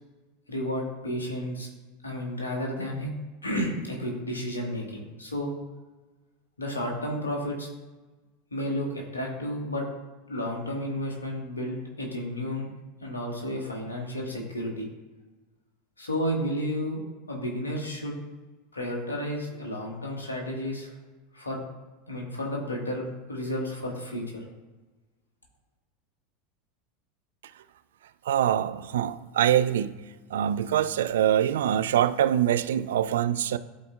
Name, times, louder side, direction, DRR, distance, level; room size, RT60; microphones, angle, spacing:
voice 1, 0.5-1.7 2.0-3.1 3.4-5.5 6.6-7.7 8.5-9.9 10.3-12.7 13.0-14.9 16.0-17.0 17.3-18.2 18.7-20.9 21.3-21.6 22.1-24.4, equal, 85° left, 1.5 m, -32 dB
voice 2, 28.2-30.0 30.3-33.6, right 10 dB, 70° right, 0.3 m, -24 dB
12.5 x 4.2 x 2.4 m
figure-of-eight pair, 80°, 0 cm